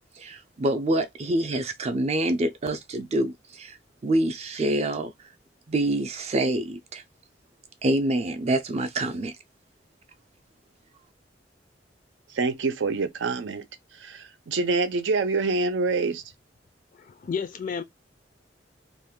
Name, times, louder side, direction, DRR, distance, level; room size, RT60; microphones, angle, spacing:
voice 1, 0.2-3.8 4.0-5.1 5.7-7.0 7.8-9.3, right 1 dB, 35° right, 0.4 m, -26 dB
voice 2, 12.3-13.7 14.0-16.2, right 3 dB, 85° right, 0.5 m, -26 dB
voice 3, 16.9-17.8, left 6 dB, 45° left, 0.3 m, -32 dB
2.5 x 2.2 x 3.6 m
head